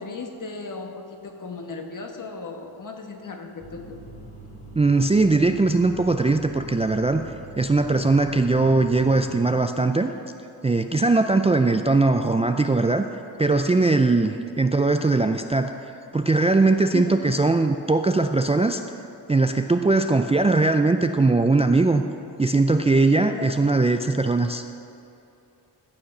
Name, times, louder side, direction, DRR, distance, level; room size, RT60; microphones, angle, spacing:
voice 1, 0.0-4.0 16.9-17.4 23.2-23.6, left 3 dB, 50° left, 4 dB, 1.4 m, -36 dB
sound 1, 3.6-9.3, right 2 dB, 30° left, 2.8 m, -42 dB
voice 2, 4.8-7.2 7.6-10.1 10.6-13.0 13.4-15.7 16.1-18.8 19.3-22.0 22.4-24.6, right 3 dB, 15° right, 6 dB, 0.4 m, -20 dB
14.5 x 6.4 x 5.9 m, 2.8 s
cardioid pair, 75°, 42 cm